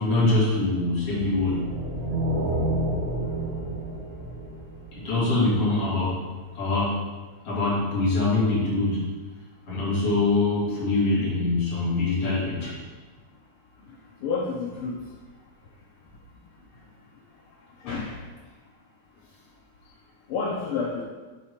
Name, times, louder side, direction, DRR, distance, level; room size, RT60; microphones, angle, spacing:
voice 1, 0.0-1.6 4.9-6.2 6.5-7.0 7.4-9.1 9.7-12.7, left 2 dB, 55° left, -8 dB, 3.4 m, -24 dB
sound 1, 1.0-5.4, right 1 dB, 75° right, 2.7 m, -29 dB
voice 2, 14.2-15.0 17.8-18.2 20.3-21.0, left 4 dB, 80° left, -3 dB, 1.2 m, -29 dB
9.7 x 3.7 x 4.4 m, 1.3 s
omnidirectional pair, 3.4 m